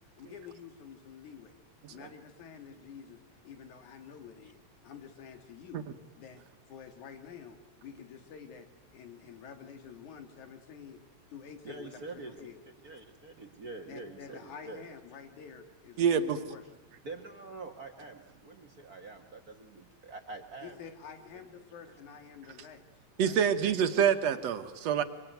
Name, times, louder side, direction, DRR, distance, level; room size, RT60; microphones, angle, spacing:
voice 1, 0.2-1.5 1.9-5.9 6.2-6.4 6.7-8.7 8.9-11.0 11.3-12.5 13.9-16.6 20.6-22.9 23.2-23.4, left 7 dB, 85° left, 6 dB, 3.4 m, -49 dB
voice 2, 11.6-12.4 12.8-14.8 17.0-20.8 21.9-22.0, right 3 dB, 45° right, 4 dB, 1.3 m, -45 dB
voice 3, 16.0-16.4 23.2-25.0, right 8 dB, 65° right, 8 dB, 2.2 m, -26 dB
25.0 x 23.5 x 9.2 m, 1.1 s
omnidirectional pair, 3.3 m